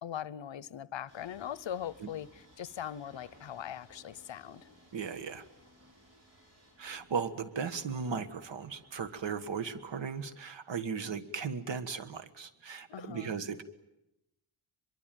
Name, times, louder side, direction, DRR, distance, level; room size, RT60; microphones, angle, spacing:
voice 1, 0.0-4.7 12.9-13.4, left 10 dB, 75° left, 0.8 m, -41 dB
sound 1, 1.1-10.3, equal, 35° right, 6.1 m, -61 dB
voice 2, 4.9-5.4 6.8-13.6, right 6 dB, 70° right, 1.6 m, -37 dB
23.5 x 23.0 x 9.2 m
wide cardioid pair, 145°, 45 cm